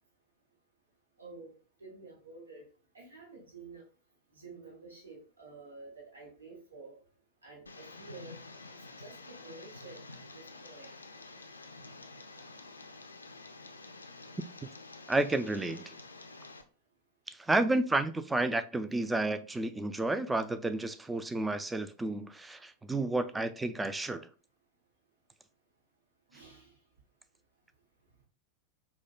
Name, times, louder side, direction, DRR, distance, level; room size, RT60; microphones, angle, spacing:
voice 1, 1.2-1.5 1.8-2.7 2.9-3.8 4.3-7.0 7.4-8.4 9.0-10.9 26.3-26.7, right 3 dB, 75° right, 0.9 m, -50 dB
Tick, 7.7-16.6, left 3 dB, 80° left, 0.4 m, -49 dB
voice 2, 15.1-15.9 17.4-24.3, right 2 dB, 10° right, 0.3 m, -31 dB
4.8 x 2.1 x 2.3 m
figure-of-eight pair, 90°, 0 cm